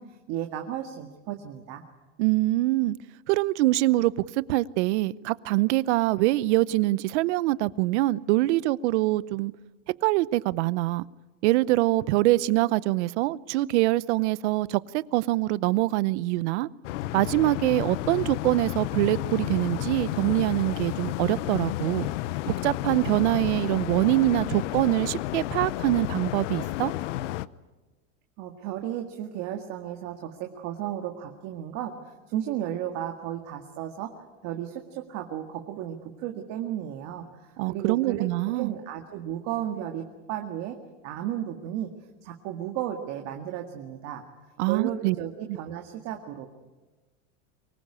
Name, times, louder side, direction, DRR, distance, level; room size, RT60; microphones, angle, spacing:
voice 1, 0.0-1.8 28.4-40.8 41.0-41.9 42.2-44.2 44.7-46.5, right 11 dB, 45° right, 4 dB, 2.0 m, -34 dB
voice 2, 2.2-3.0 3.3-9.5 10.0-11.0 11.4-16.7 17.1-22.1 22.5-26.9 37.6-38.7 44.6-45.2, right 18 dB, 65° right, 20 dB, 0.8 m, -24 dB
sound 1, 16.8-27.5, left 16 dB, 75° left, 0.9 m, -31 dB
24.5 x 20.5 x 9.9 m, 1.2 s
supercardioid pair, 155°, 37 cm